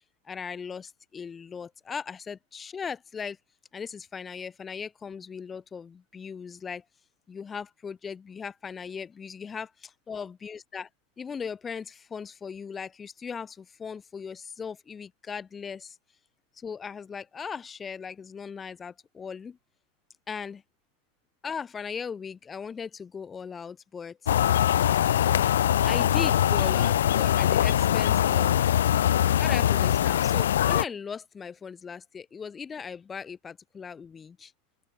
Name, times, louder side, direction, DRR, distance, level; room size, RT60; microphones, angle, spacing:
voice 1, 0.2-3.4 3.7-6.8 7.3-10.9 11.2-16.0 16.5-19.6 20.3-20.6 21.4-24.3 25.8-28.5 29.2-34.5, left 6 dB, 20° left, 1.9 m, -38 dB
sound 1, 24.3-30.8, left 10 dB, 60° left, 0.6 m, -22 dB
open air
figure-of-eight pair, 90°, 0 cm